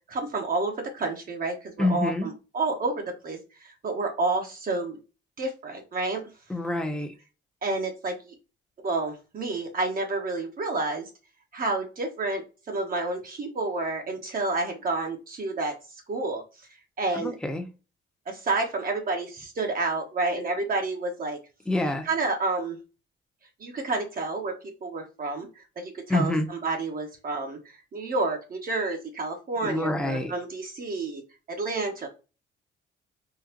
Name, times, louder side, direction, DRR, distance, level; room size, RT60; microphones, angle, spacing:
voice 1, 0.1-5.0 5.4-6.2 7.6-8.3 8.8-11.1 11.5-15.7 16.1-16.4 17.0-17.3 18.3-21.4 22.0-22.8 23.6-24.5 24.8-25.5 25.8-31.2 31.5-32.1, right 3 dB, 45° right, 2 dB, 0.9 m, -29 dB
voice 2, 1.8-2.3 6.5-7.1 17.1-17.7 21.7-22.1 26.1-26.5 29.6-30.3, left 2 dB, 5° left, 4 dB, 0.7 m, -26 dB
3.8 x 2.4 x 2.9 m, 0.31 s
cardioid pair, 90°, 20 cm